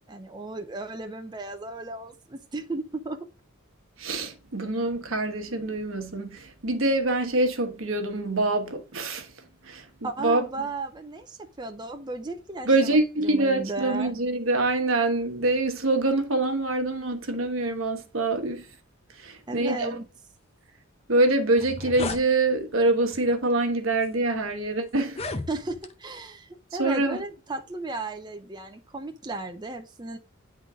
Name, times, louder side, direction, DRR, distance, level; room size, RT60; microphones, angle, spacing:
voice 1, 0.1-3.2 10.0-14.1 19.5-20.0 25.5-30.2, right 2 dB, 20° right, 0.7 m, -35 dB
voice 2, 4.0-9.3 9.6-9.9 10.2-10.4 12.6-18.7 19.2-20.0 21.1-25.2 26.8-27.2, right 2 dB, 70° right, 1.2 m, -25 dB
sound 1, 21.1-21.2 21.5-22.2 23.1-23.3 24.0-24.1 25.0-25.9, left 3 dB, 30° left, 0.7 m, -34 dB
9.7 x 3.9 x 3.7 m
head